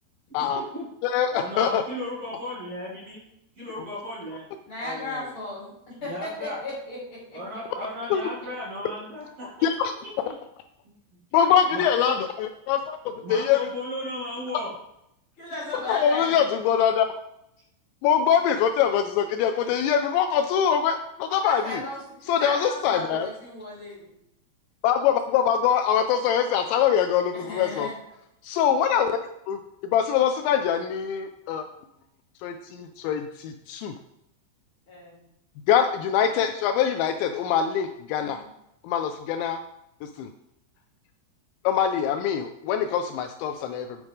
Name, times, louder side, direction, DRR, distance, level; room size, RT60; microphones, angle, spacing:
voice 1, 0.3-0.8 1.3-3.2 3.6-4.4 4.8-5.3 6.0-6.6 7.3-9.7 10.0-10.4 10.8-10.9 11.7-12.1 13.2-14.7, left 1 dB, 40° right, -8 dB, 2.7 m, -35 dB
voice 2, 1.0-1.8 8.1-8.2 9.6-9.9 11.3-13.0 13.3-13.6 15.9-17.1 18.0-21.8 22.3-23.3 24.8-27.9 28.4-29.2 29.5-31.7 32.4-33.9 35.7-38.4 38.8-39.6 40.0-40.3 41.6-44.0, left 8 dB, 85° left, 7 dB, 2.7 m, -23 dB
voice 3, 4.7-7.4 8.4-8.5 15.4-16.4 21.4-24.1 27.3-27.9 34.9-35.2 38.1-38.5, left 2 dB, 30° left, -6 dB, 3.9 m, -36 dB
8.0 x 7.8 x 3.6 m, 0.80 s
omnidirectional pair, 5.3 m